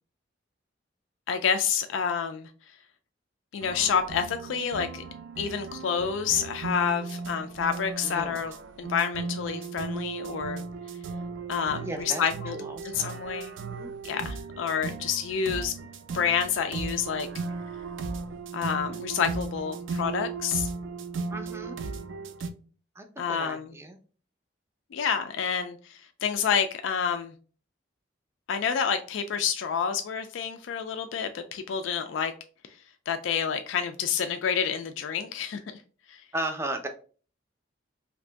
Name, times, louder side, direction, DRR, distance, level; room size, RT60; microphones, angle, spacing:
voice 1, 1.3-2.5 3.5-5.0 5.4-8.5 8.8-10.6 11.5-12.6 12.8-13.5 14.0-15.7 16.1-17.3 18.5-20.7 23.2-23.7 24.9-27.3 28.5-32.3 33.1-35.6 36.1-36.2, left 7 dB, 80° left, 0.3 m, -28 dB
sound 1, 3.6-22.5, right 4 dB, 80° right, 0.4 m, -36 dB
voice 2, 8.0-8.4 11.8-12.2 12.5-13.2 13.7-13.9 21.3-22.0 23.0-24.0 36.3-36.9, right 1 dB, 15° right, 0.4 m, -36 dB
2.9 x 2.6 x 3.3 m
head